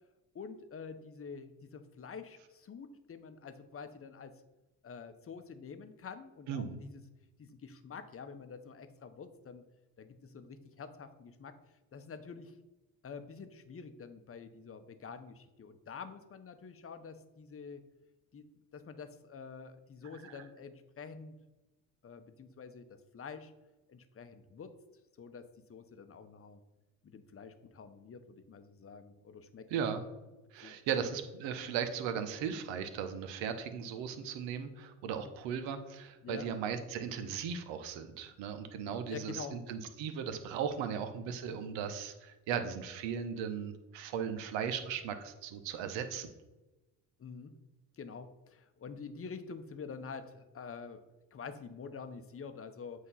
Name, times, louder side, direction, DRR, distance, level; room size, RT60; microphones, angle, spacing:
voice 1, 0.3-4.3 4.8-7.0 7.4-9.6 10.0-11.5 11.9-12.6 13.0-17.8 18.3-18.4 18.7-21.3 22.0-23.5 23.9-24.7 25.2-26.6 27.0-29.6 30.6-31.0 35.1-35.3 36.2-36.5 39.1-39.5 47.2-47.6 47.9-51.0 51.3-53.1, left 5 dB, 30° left, 9 dB, 0.8 m, -47 dB
voice 2, 6.5-6.8 20.2-20.4 29.7-30.0 30.5-46.3, right 7 dB, 75° right, 8 dB, 0.9 m, -37 dB
8.0 x 2.8 x 5.5 m, 1.1 s
supercardioid pair, 65°, 44 cm